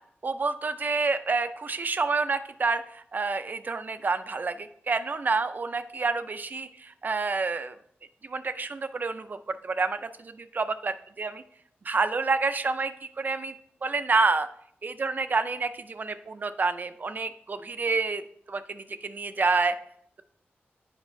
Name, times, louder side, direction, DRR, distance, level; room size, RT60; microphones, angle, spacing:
voice 1, 0.2-7.7 8.2-9.4 9.6-11.4 11.9-13.5 13.8-14.5 14.8-18.2 18.5-19.7, right 4 dB, 45° right, 11 dB, 0.4 m, -28 dB
8.1 x 5.2 x 2.6 m, 0.68 s
wide cardioid pair, 85°, 4 cm